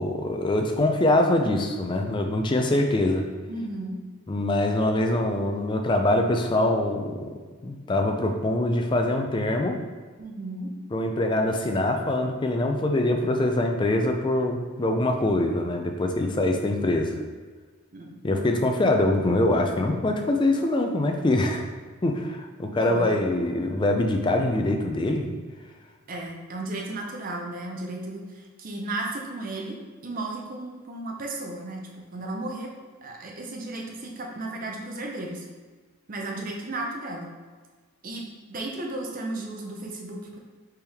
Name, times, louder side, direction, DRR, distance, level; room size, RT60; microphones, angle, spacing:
voice 1, 0.0-3.2 4.3-7.3 7.6-9.8 10.9-17.2 18.2-21.7 22.0-25.3, left 1 dB, 20° left, 3 dB, 0.3 m, -24 dB
voice 2, 3.5-4.0 10.2-10.7 17.9-18.2 22.8-23.2 26.1-32.7 33.0-35.5 36.1-37.3 38.0-40.4, right 2 dB, 40° right, 0 dB, 0.6 m, -34 dB
4.4 x 3.5 x 3.4 m, 1.4 s
head